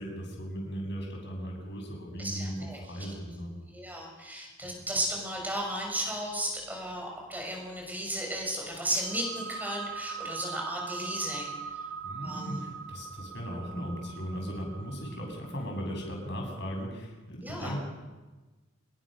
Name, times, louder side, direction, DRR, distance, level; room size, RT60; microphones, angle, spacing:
voice 1, 0.0-3.5 4.6-4.9 12.0-17.8, equal, 55° left, 1 dB, 7.4 m, -37 dB
voice 2, 2.2-2.8 3.7-11.5 12.2-12.6 17.4-17.7, right 1 dB, 10° right, 0 dB, 6.6 m, -34 dB
sound 1, 5.2-7.0 7.3-7.4 7.8-8.4 8.7-16.8, right 6 dB, 60° right, 7.2 m, -42 dB
26.0 x 21.5 x 6.5 m, 1.2 s
head